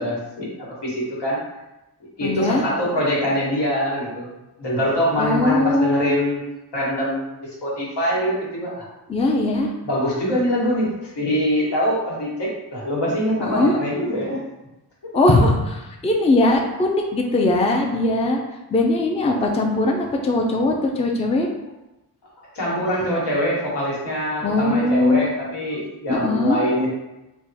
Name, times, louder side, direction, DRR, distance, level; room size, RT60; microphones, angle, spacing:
voice 1, 0.0-1.4 2.2-4.3 4.6-6.4 6.7-8.8 9.8-14.4 22.5-26.9, equal, 85° left, -5 dB, 1.4 m, -24 dB
voice 2, 2.2-2.6 5.2-6.2 9.1-9.7 13.4-13.7 15.1-18.4 18.7-21.5 24.4-25.3 26.1-26.6, left 2 dB, 15° left, 1 dB, 0.4 m, -20 dB
3.4 x 2.3 x 4.1 m, 0.99 s
wide cardioid pair, 105°, 39 cm